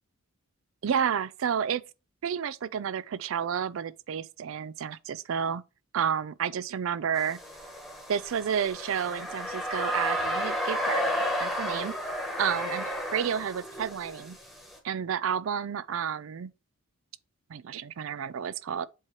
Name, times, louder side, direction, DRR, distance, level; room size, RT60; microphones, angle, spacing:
voice 1, 0.8-1.8 2.2-5.6 5.9-7.4 8.1-11.0 11.4-11.9 12.4-14.4 14.8-16.5 17.5-18.9, right 8 dB, 65° right, 0.4 m, -30 dB
sound 1, 7.2-14.8, equal, ahead, 1.1 m, -32 dB
7.7 x 2.9 x 4.7 m
head